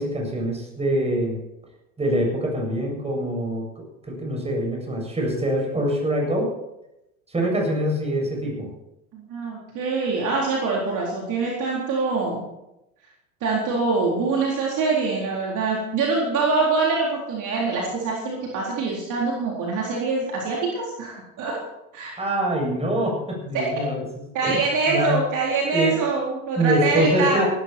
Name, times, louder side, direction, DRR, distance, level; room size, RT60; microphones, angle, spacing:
voice 1, 0.0-1.4 2.0-6.5 7.3-8.7 22.2-24.0 24.4-25.2 25.7-26.0 26.6-27.5, right 1 dB, 15° right, 0 dB, 7.8 m, -24 dB
voice 2, 9.1-12.4 13.4-21.6 21.9-22.1 23.5-23.8 24.3-27.4, right 4 dB, 45° right, -3 dB, 4.1 m, -24 dB
18.0 x 13.0 x 4.6 m, 0.89 s
hypercardioid pair, 80°, 43 cm